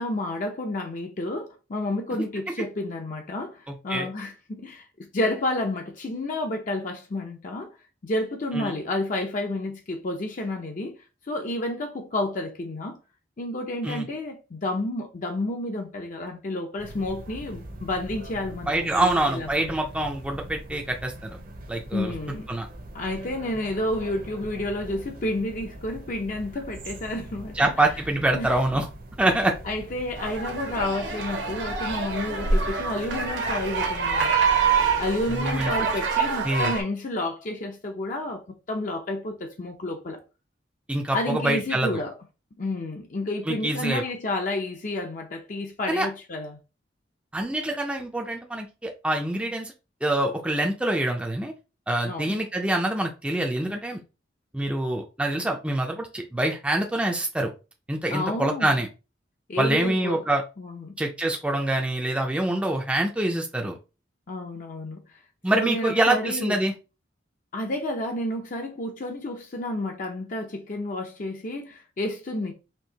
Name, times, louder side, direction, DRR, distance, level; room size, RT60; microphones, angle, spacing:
voice 1, 0.0-7.7 8.0-11.0 11.3-13.0 13.4-19.8 21.9-22.5 22.9-27.7 28.3-28.6 29.6-34.3 35.0-40.2 41.1-42.2 42.6-46.6 52.0-52.3 58.1-58.7 59.5-60.2 60.6-60.9 64.3-65.0 65.5-66.7 67.5-72.5, left 1 dB, 45° left, 0.5 m, -30 dB
voice 2, 3.7-4.1 8.5-8.7 13.8-14.1 18.7-21.4 21.7-22.1 22.5-22.7 27.6-28.9 29.2-29.5 35.3-35.7 36.4-36.7 40.9-42.0 43.5-44.0 45.9-46.1 47.3-49.7 50.0-51.5 51.9-54.0 54.5-57.5 57.9-58.9 59.6-60.4 61.0-63.7 65.4-66.7, right 1 dB, 5° right, 0.4 m, -25 dB
sound 1, 16.8-36.0, right 1 dB, 50° right, 0.8 m, -42 dB
sound 2, 30.2-36.8, right 5 dB, 75° right, 1.2 m, -26 dB
4.4 x 2.7 x 2.8 m
head